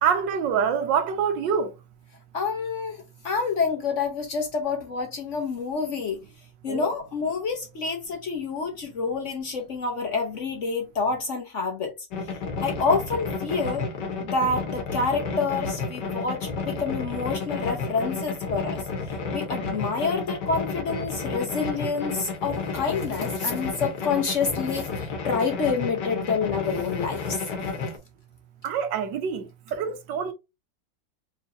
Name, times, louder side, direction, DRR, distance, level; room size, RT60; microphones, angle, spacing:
voice 1, 0.0-1.7 6.7-6.9 28.6-30.3, right 7 dB, 80° right, 1.4 m, -26 dB
voice 2, 2.3-6.2 6.6-11.9 12.6-13.9 14.2-18.8 19.3-27.5, left 4 dB, 50° left, 1.0 m, -28 dB
sound 1, 12.1-28.0, left 4 dB, 70° left, 1.7 m, -31 dB
4.4 x 3.2 x 2.7 m
omnidirectional pair, 2.0 m